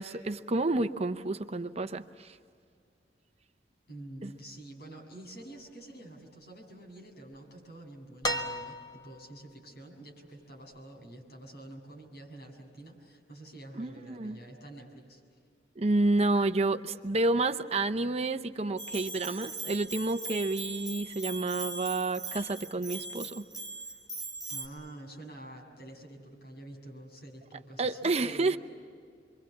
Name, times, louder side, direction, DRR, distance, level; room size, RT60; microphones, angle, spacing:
voice 1, 0.0-2.4 4.2-4.3 13.8-14.4 15.8-23.5 27.8-28.6, right 2 dB, 35° right, 9 dB, 0.7 m, -29 dB
voice 2, 3.9-15.2 24.5-28.6, right 1 dB, 65° left, 1 dB, 7.0 m, -48 dB
sound 1, 8.2-9.3 10.8-10.9, equal, 25° left, 1.4 m, -33 dB
Bell, 18.8-24.7, right 3 dB, ahead, 4.0 m, -40 dB
28.0 x 24.0 x 7.3 m, 2.2 s
head